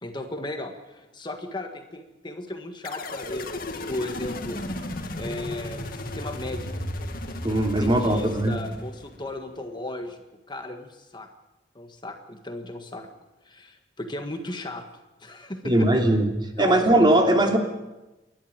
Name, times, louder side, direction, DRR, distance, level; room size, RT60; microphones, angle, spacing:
voice 1, 0.0-4.7 5.2-6.7 7.8-10.2 10.5-11.3 11.7-13.1 13.4-14.8 15.2-16.0 16.6-17.0, left 1 dB, 25° left, 5 dB, 1.7 m, -36 dB
sound 1, 2.8-9.3, left 1 dB, 55° left, 2.2 m, -35 dB
voice 2, 7.4-8.6 15.6-16.3 16.6-17.6, right 1 dB, 25° right, 3 dB, 2.9 m, -20 dB
29.5 x 12.0 x 9.0 m, 1.0 s
head